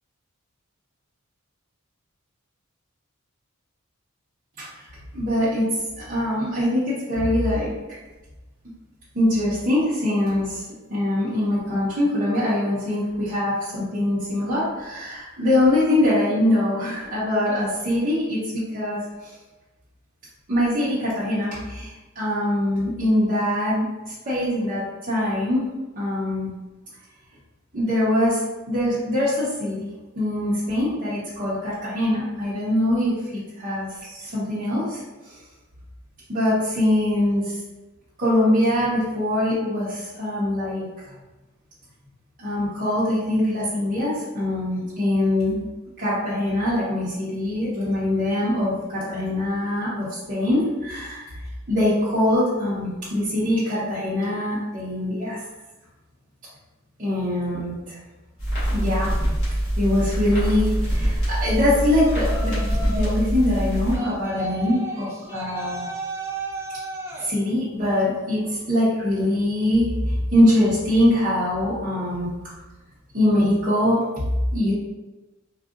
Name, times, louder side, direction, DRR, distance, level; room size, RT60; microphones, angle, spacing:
voice 1, 5.1-5.7 6.0-7.7 9.1-10.6 10.9-19.3 20.5-23.9 24.3-25.7 25.9-26.5 27.7-28.4 28.7-29.9 30.2-35.0 36.3-37.6 38.2-40.8 42.4-45.6 46.0-51.3 51.7-55.4 57.0-58.0 58.7-59.1 59.8-62.6 62.9-65.9 67.2-68.4 68.7-72.3 73.1-74.0 74.5-74.7, left 1 dB, 40° right, -10 dB, 0.8 m, -23 dB
sound 1, 58.4-64.0, right 1 dB, 50° left, 1.5 m, -24 dB
Yell, 61.9-63.2 63.9-67.3, right 2 dB, 10° right, 0.4 m, -33 dB
3.6 x 2.3 x 2.4 m, 1.2 s
head